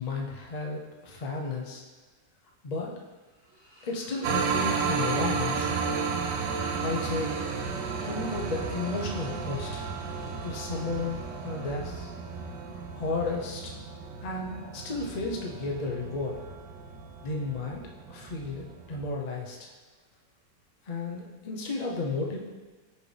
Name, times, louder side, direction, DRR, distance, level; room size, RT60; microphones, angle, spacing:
voice 1, 0.0-1.8 2.6-2.9 3.8-5.7 6.8-7.4 8.0-9.9 10.4-12.1 12.7-13.6 14.2-16.4 17.2-17.8 18.1-19.7 20.8-22.4, left 3 dB, 70° left, -1 dB, 0.4 m, -33 dB
sound 1, 2.1-2.2 2.4-21.3, equal, 35° right, 2.3 m, -53 dB
sound 2, 4.2-19.1, right 5 dB, 80° right, 1.3 m, -33 dB
5.9 x 5.2 x 3.3 m, 1.3 s
omnidirectional pair, 1.9 m